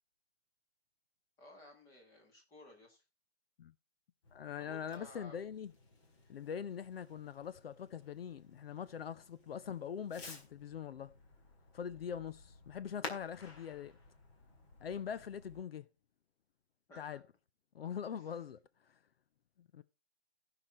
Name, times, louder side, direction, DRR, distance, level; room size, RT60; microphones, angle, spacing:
voice 1, 1.4-3.0 4.6-5.4 16.9-17.2 18.2-18.3, left 1 dB, 10° left, 1.6 m, -56 dB
Fireworks, 4.2-15.6, left 3 dB, 30° left, 1.9 m, -54 dB
voice 2, 4.3-5.7 6.3-11.1 11.7-14.0 14.8-15.9 17.0-17.2 17.7-18.6 18.9-19.0 19.7-19.8, left 8 dB, 65° left, 0.7 m, -43 dB
16.0 x 5.9 x 4.2 m
hypercardioid pair, 175°, 32 cm